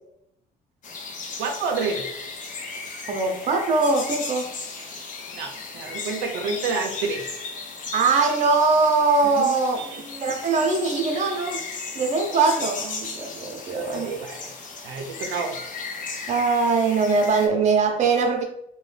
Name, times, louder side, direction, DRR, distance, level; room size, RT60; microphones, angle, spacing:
sound 1, 0.8-17.5, left 4 dB, 50° left, 0.6 m, -36 dB
voice 1, 1.4-2.0 5.3-7.3 9.2-10.4 13.7-14.5 14.8-15.6, right 4 dB, 90° right, 2 dB, 0.5 m, -30 dB
voice 2, 3.1-4.6 7.9-9.8 10.2-11.6 11.9-14.1 16.3-18.4, right 4 dB, 45° right, 3 dB, 0.7 m, -22 dB
2.6 x 2.2 x 3.2 m, 0.77 s
cardioid pair, 110°, 17 cm